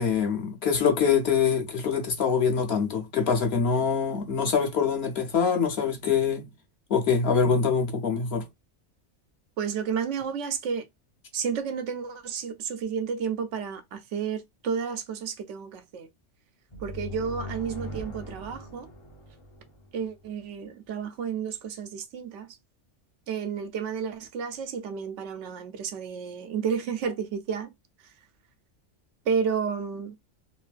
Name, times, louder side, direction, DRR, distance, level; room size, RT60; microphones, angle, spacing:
voice 1, 0.0-6.5 6.9-8.4, left 6 dB, 60° left, 1.0 m, -24 dB
voice 2, 9.6-10.9 11.3-16.1 16.8-18.9 19.9-22.6 23.3-27.7 28.0-28.1 29.3-30.2, right 6 dB, 90° right, 0.9 m, -31 dB
sound 1, 16.7-20.3, equal, 35° left, 0.6 m, -40 dB
3.1 x 2.6 x 2.3 m
omnidirectional pair, 1.2 m